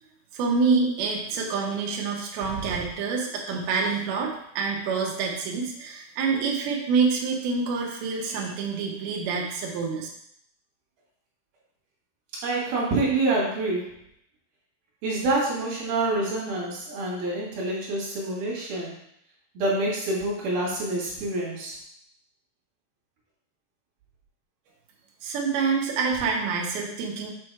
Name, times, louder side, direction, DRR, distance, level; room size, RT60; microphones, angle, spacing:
voice 1, 0.3-10.1 25.2-27.3, right 5 dB, 85° right, -1 dB, 2.2 m, -27 dB
voice 2, 12.3-13.9 15.0-18.9 19.5-21.8, right 2 dB, 60° right, -5 dB, 3.0 m, -27 dB
8.2 x 3.3 x 4.6 m, 0.73 s
omnidirectional pair, 5.8 m